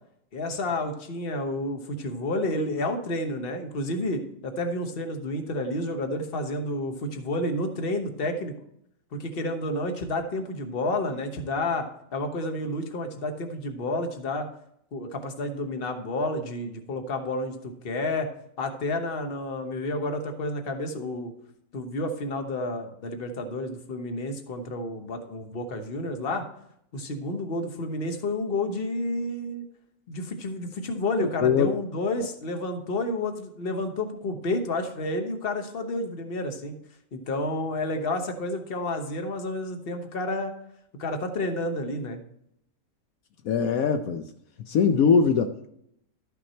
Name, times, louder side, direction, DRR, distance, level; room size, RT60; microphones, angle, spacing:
voice 1, 0.3-8.6 9.1-11.9 12.1-14.4 14.9-18.3 18.6-21.3 21.7-26.4 26.9-29.6 30.1-36.7 37.1-40.5 41.0-42.2, left 1 dB, 45° left, 6 dB, 1.2 m, -30 dB
voice 2, 31.2-31.7 43.4-44.3 44.6-45.7, left 6 dB, 75° left, 7 dB, 1.1 m, -22 dB
12.5 x 5.9 x 4.3 m, 0.74 s
omnidirectional pair, 1.5 m